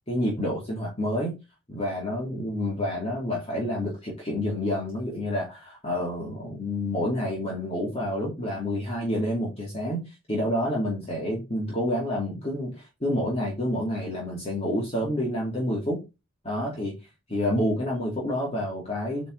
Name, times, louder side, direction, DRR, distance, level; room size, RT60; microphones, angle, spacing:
voice 1, 0.1-1.4 1.7-16.0 16.4-16.9 17.3-19.3, left 1 dB, 30° left, -3 dB, 2.5 m, -28 dB
8.7 x 4.2 x 3.9 m, 0.25 s
head